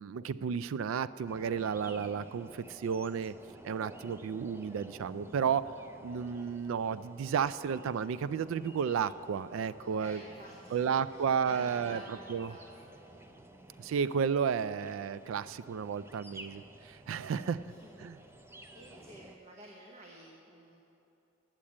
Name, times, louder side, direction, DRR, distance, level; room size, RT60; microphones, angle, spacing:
voice 1, 0.0-3.3 3.6-5.7 6.0-10.2 10.7-12.0 12.3-12.5 13.8-17.6 18.0-18.2, right 7 dB, 70° right, 16 dB, 0.3 m, -32 dB
sound 1, 1.3-19.4, right 1 dB, 10° right, 0.5 m, -52 dB
voice 2, 9.8-13.2 17.6-18.1 18.7-20.8, right 1 dB, 30° right, -2 dB, 1.0 m, -51 dB
10.0 x 7.5 x 8.5 m, 2.9 s
head